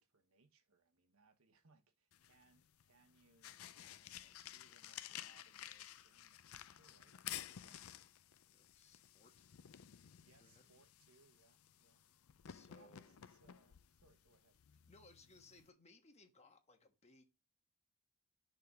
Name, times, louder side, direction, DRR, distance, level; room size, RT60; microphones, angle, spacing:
voice 1, 0.0-8.1 10.2-12.0 12.7-14.6, right 3 dB, 70° right, 1.1 m, -72 dB
sound 1, 2.1-15.7, left 11 dB, 70° left, 0.5 m, -54 dB
voice 2, 8.5-9.5 10.4-10.7 12.0-12.2 12.4-13.2 14.9-17.2, left 2 dB, 30° left, 1.3 m, -65 dB
6.8 x 3.7 x 4.7 m
head